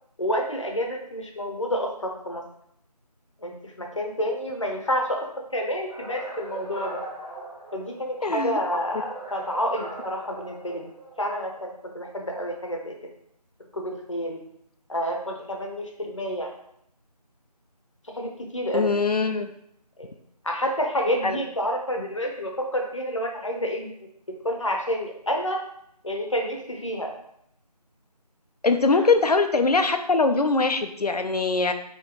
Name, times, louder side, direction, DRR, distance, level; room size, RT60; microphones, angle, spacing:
voice 1, 0.2-2.4 3.4-5.2 5.5-7.0 7.7-10.9 11.2-12.9 13.7-14.4 14.9-16.5 18.2-18.9 20.0-20.1 20.4-23.9 24.4-25.6 26.0-27.1, equal, 50° left, 1 dB, 0.8 m, -29 dB
sound 1, 5.8-8.2 8.8-11.3, right 2 dB, 55° right, 1.5 m, -40 dB
voice 2, 8.2-8.5 18.7-19.5 21.2-21.4 28.6-31.7, left 3 dB, 70° left, 8 dB, 0.5 m, -22 dB
5.1 x 3.0 x 3.0 m, 0.71 s
figure-of-eight pair, 170°, 21 cm